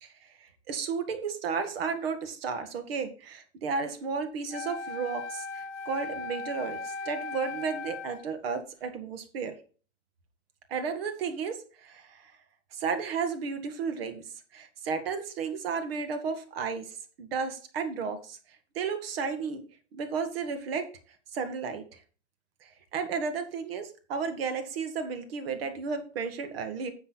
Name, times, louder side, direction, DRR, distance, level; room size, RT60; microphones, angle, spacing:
voice 1, 0.0-9.5 10.7-12.3 12.7-14.2 14.5-16.9 17.2-18.4 18.8-19.6 19.9-20.8 21.3-21.8 22.6-26.9, right 5 dB, 55° right, 8 dB, 1.9 m, -33 dB
Wind instrument woodwind instrument, 4.5-8.3, left 3 dB, 75° left, 1.1 m, -38 dB
10.0 x 6.9 x 4.1 m, 0.38 s
supercardioid pair, 165°, 36 cm